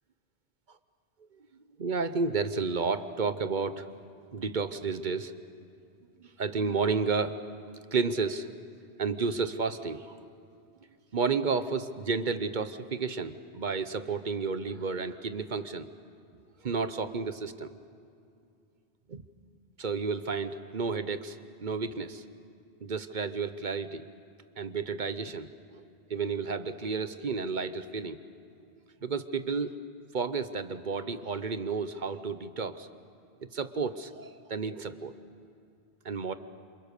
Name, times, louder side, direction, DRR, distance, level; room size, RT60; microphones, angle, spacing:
voice 1, 1.8-3.9 4.3-5.3 6.2-7.4 7.9-8.6 9.0-10.2 11.1-15.9 16.6-17.7 19.1-19.2 19.8-22.2 22.8-24.1 24.6-25.5 25.8-28.2 29.0-29.8 30.1-32.9 33.4-35.1 36.0-36.3, right 4 dB, 50° right, 11 dB, 1.0 m, -31 dB
28.0 x 27.0 x 6.6 m, 2.4 s
omnidirectional pair, 1.1 m